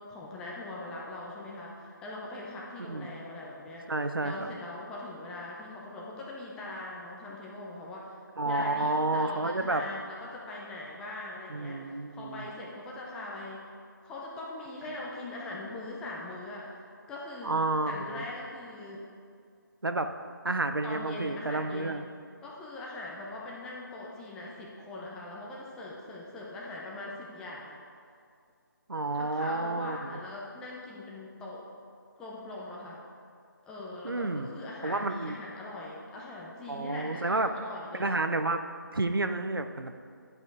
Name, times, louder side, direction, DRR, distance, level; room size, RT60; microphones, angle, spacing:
voice 1, 0.0-3.9 4.2-13.7 14.0-19.0 20.8-22.0 22.4-27.8 29.1-31.7 32.2-33.0 33.6-38.2, left 2 dB, 5° left, -4 dB, 0.6 m, -41 dB
voice 2, 3.9-4.3 8.4-9.8 11.5-12.5 17.4-18.2 19.8-20.1 20.4-22.1 28.9-30.2 34.0-35.4 36.7-37.5 37.9-38.6 38.9-40.0, right 2 dB, 85° right, 8 dB, 0.7 m, -30 dB
10.5 x 5.4 x 4.7 m, 2.3 s
figure-of-eight pair, 155°, 11 cm